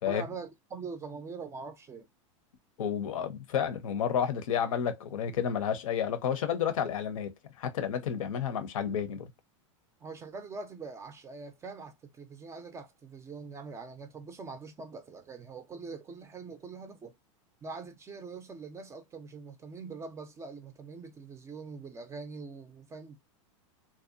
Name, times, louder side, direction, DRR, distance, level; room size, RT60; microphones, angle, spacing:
voice 1, 0.1-2.1 10.0-17.2 17.6-23.2, right 4 dB, 15° right, 0.4 m, -43 dB
voice 2, 2.8-9.3, left 8 dB, 85° left, 0.6 m, -31 dB
2.5 x 2.1 x 2.4 m
supercardioid pair, 125°, 17 cm